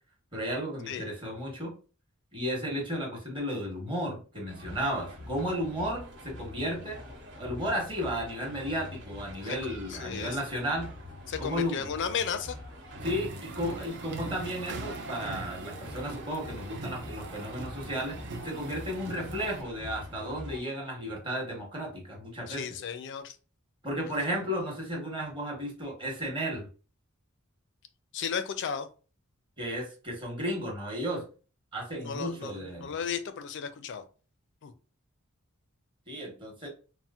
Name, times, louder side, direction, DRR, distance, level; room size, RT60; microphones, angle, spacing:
voice 1, 0.3-1.7 2.3-7.0 7.4-10.9 11.4-11.9 13.0-18.2 18.4-22.8 23.8-26.7 29.6-31.2 31.7-33.1 36.1-36.7, equal, 25° right, -1 dB, 1.0 m, -34 dB
sound 1, 4.5-20.6, left 1 dB, 75° right, 1.1 m, -44 dB
voice 2, 9.9-10.4 11.3-12.6 22.5-23.4 28.1-28.9 32.0-34.0 34.6-34.7, left 7 dB, 55° left, 10 dB, 0.4 m, -34 dB
sound 2, 12.9-19.6, right 3 dB, 55° right, 0.5 m, -42 dB
4.1 x 2.0 x 2.3 m, 0.36 s
head